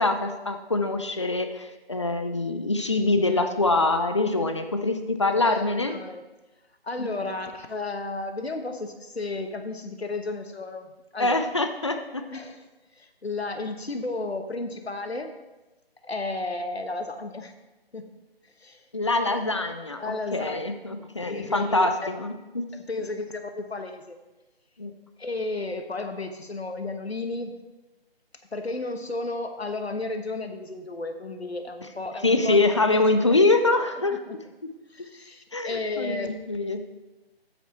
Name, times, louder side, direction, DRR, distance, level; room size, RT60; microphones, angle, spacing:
voice 1, 0.0-5.9 7.0-7.1 11.2-12.2 18.9-22.6 24.8-24.9 32.2-34.2 35.5-36.8, left 2 dB, 30° left, 7 dB, 0.5 m, -24 dB
voice 2, 5.3-6.2 6.8-11.4 12.3-12.6 12.9-15.3 16.0-17.5 17.9-18.1 18.6-18.8 20.0-20.7 21.3-21.9 22.7-24.2 25.2-27.6 28.5-33.4 34.1-34.4 34.9-36.4, left 2 dB, 80° left, 6 dB, 1.3 m, -33 dB
9.0 x 7.9 x 4.3 m, 1.1 s
figure-of-eight pair, 155°, 31 cm